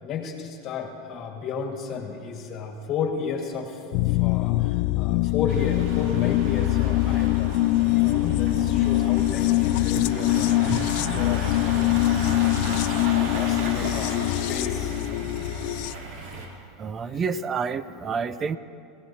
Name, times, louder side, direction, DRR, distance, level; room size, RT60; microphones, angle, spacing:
voice 1, 0.0-12.2 12.6-14.1 14.5-15.5, left 5 dB, 40° left, 2 dB, 1.9 m, -34 dB
sound 1, 3.9-15.9, left 17 dB, 60° left, 0.3 m, -23 dB
sound 2, 5.5-16.5, right 2 dB, 60° right, 3.2 m, -35 dB
voice 2, 16.8-18.6, right 5 dB, 30° right, 14 dB, 0.6 m, -29 dB
25.0 x 17.0 x 2.8 m, 2.5 s
supercardioid pair, 125°, 0 cm